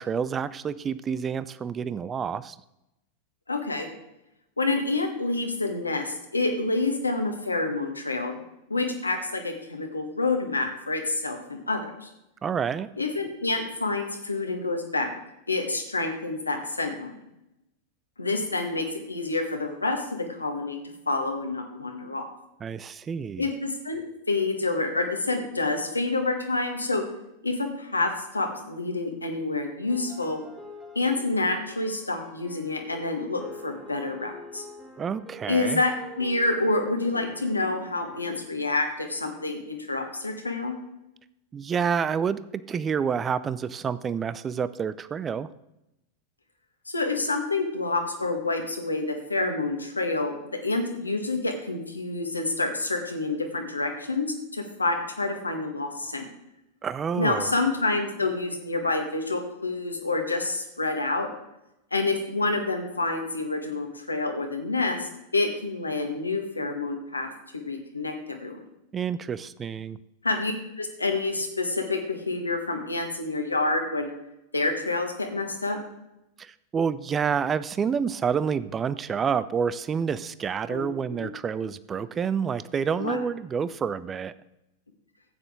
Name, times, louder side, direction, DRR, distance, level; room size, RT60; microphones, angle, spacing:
voice 1, 0.0-2.6 12.4-12.9 22.6-23.4 35.0-35.8 41.5-45.5 56.8-57.5 68.9-70.0 76.4-84.3, right 6 dB, 20° right, 16 dB, 0.4 m, -28 dB
voice 2, 3.5-3.9 4.6-8.4 8.7-12.1 13.0-15.2 15.5-17.2 18.2-20.8 21.1-22.2 23.4-24.0 24.3-27.0 27.4-30.4 31.0-34.7 35.5-40.7 46.9-50.3 50.6-56.3 57.1-61.3 61.9-68.6 70.2-74.1 74.5-75.8 80.7-80.9 81.1-81.3 83.0-83.2, left 3 dB, 80° left, 4 dB, 1.8 m, -28 dB
sound 1, 29.9-38.5, right 1 dB, 5° left, 2.1 m, -46 dB
13.5 x 9.0 x 3.8 m, 0.88 s
figure-of-eight pair, 90°, 0 cm